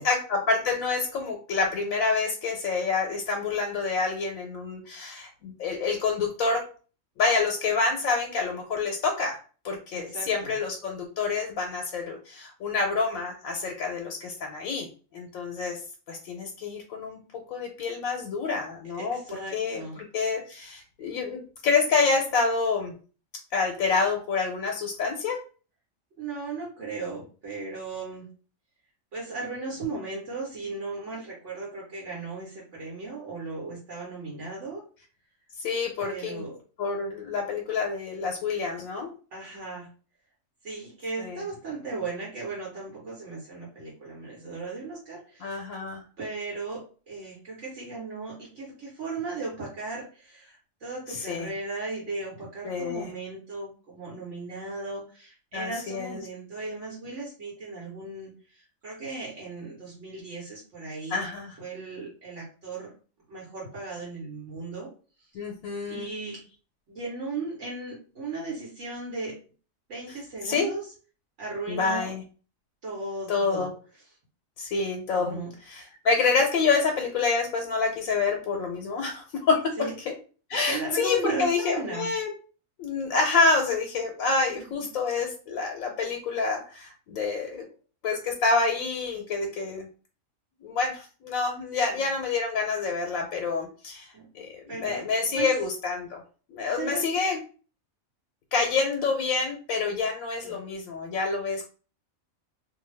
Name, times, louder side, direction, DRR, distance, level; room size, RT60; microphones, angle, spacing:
voice 1, 0.0-6.6 7.2-9.4 9.6-14.9 15.1-15.8 16.1-17.2 17.5-19.2 19.5-22.9 23.5-25.4 35.6-36.4 36.8-39.1 41.2-41.4 45.4-46.0 51.1-51.5 52.6-53.1 55.5-56.2 61.1-61.6 65.3-66.1 70.4-70.7 71.7-72.2 73.3-73.7 74.6-75.4 75.7-79.6 80.5-82.3 82.8-87.6 88.0-89.9 90.6-96.2 96.5-97.4 98.5-101.7, left 4 dB, 85° left, 2 dB, 1.0 m, -27 dB
voice 2, 9.9-10.6 19.0-20.0 26.2-28.3 29.1-34.8 36.0-36.6 39.3-39.9 40.6-45.7 46.2-61.2 61.6-62.9 63.3-64.9 65.2-65.3 65.9-66.4 66.9-69.4 69.9-70.9 71.4-72.1 72.8-73.7 75.2-75.5 79.8-79.9 80.7-82.1 84.6-84.9 91.9-92.1 94.1-94.3 94.7-95.5 96.6-97.0 100.4-100.6, right 3 dB, 65° right, -4 dB, 1.2 m, -36 dB
2.6 x 2.3 x 3.2 m, 0.38 s
omnidirectional pair, 1.4 m